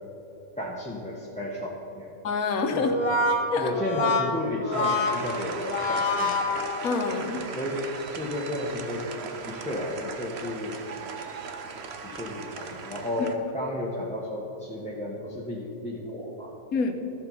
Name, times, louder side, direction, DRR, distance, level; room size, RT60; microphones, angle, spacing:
voice 1, 0.6-2.1 2.7-3.1 3.6-6.3 7.5-10.7 12.0-16.5, left 1 dB, 5° left, -5 dB, 1.1 m, -33 dB
voice 2, 2.2-3.0 3.5-3.7 6.8-7.5 13.2-13.3 16.7-16.9, left 4 dB, 90° left, 6 dB, 1.5 m, -27 dB
Brass instrument, 2.8-7.3, left 2 dB, 50° left, 1.3 m, -27 dB
sound 1, 4.7-13.3, right 5 dB, 55° right, 1.0 m, -38 dB
13.0 x 7.8 x 5.5 m, 3.0 s
omnidirectional pair, 1.5 m